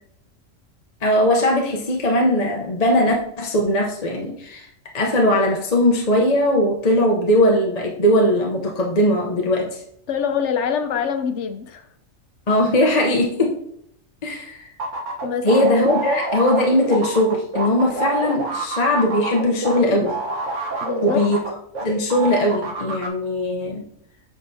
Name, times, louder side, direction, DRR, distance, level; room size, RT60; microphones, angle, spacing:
voice 1, 1.0-4.7 4.9-9.8 12.5-13.6 14.2-14.7 15.4-20.2 21.0-21.4 21.8-23.8, left 1 dB, 35° left, 0 dB, 0.8 m, -19 dB
voice 2, 10.1-11.8 15.2-15.5 20.8-21.2, left 7 dB, 65° left, 9 dB, 0.9 m, -24 dB
sound 1, 14.8-21.8 22.1-23.1, right 3 dB, 70° right, 1.4 m, -27 dB
8.3 x 6.2 x 2.7 m, 0.71 s
omnidirectional pair, 1.3 m